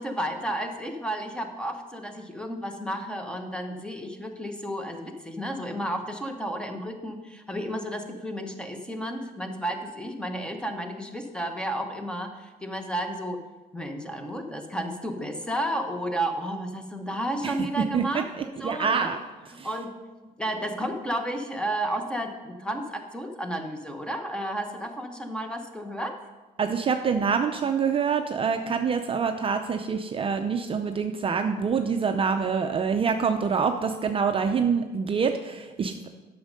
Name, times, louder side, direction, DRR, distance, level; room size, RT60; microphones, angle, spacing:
voice 1, 0.0-13.4 13.7-19.1 19.5-19.9 20.2-26.2, right 1 dB, 5° left, 5 dB, 1.0 m, -32 dB
voice 2, 18.6-19.2 19.6-19.7 26.6-35.9, right 6 dB, 35° right, 6 dB, 0.5 m, -26 dB
8.5 x 6.4 x 5.2 m, 1.2 s
cardioid pair, 110°, 17 cm